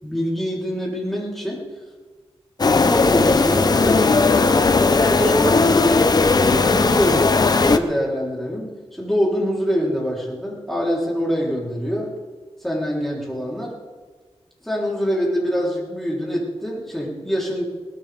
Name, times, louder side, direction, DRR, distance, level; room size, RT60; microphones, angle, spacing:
voice 1, 0.0-1.6 2.7-6.0 6.3-12.1 12.6-13.7 14.6-17.6, equal, ahead, -5 dB, 3.7 m, -24 dB
sound 1, 2.6-7.8, left 4 dB, 40° left, 0.7 m, -17 dB
21.0 x 19.0 x 3.6 m, 1.4 s
wide cardioid pair, 145°, 11 cm